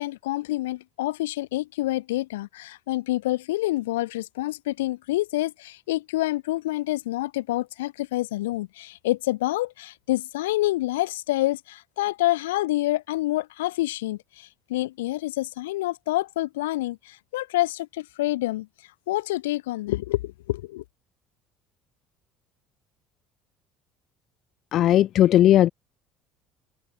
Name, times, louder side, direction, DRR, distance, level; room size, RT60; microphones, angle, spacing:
voice 1, 0.0-18.7 19.1-20.8, left 17 dB, 80° left, 2.3 m, -27 dB
voice 2, 24.7-25.7, left 12 dB, 55° left, 1.1 m, -17 dB
open air
hypercardioid pair, 60°, 0 cm